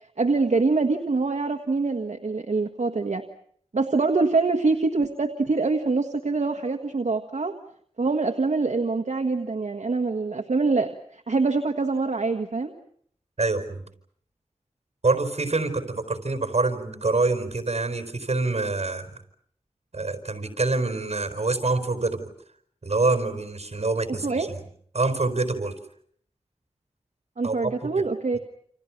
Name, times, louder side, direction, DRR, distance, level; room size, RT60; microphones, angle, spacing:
voice 1, 0.2-3.2 3.7-7.5 8.0-12.7 24.2-24.5 27.4-28.4, right 3 dB, 80° right, 4 dB, 1.6 m, -24 dB
voice 2, 13.4-13.8 15.0-19.1 19.9-22.3 22.8-24.6 24.9-25.8 27.4-28.0, right 3 dB, 65° right, 9 dB, 4.5 m, -26 dB
29.5 x 28.0 x 6.0 m, 0.62 s
wide cardioid pair, 70°, 12 cm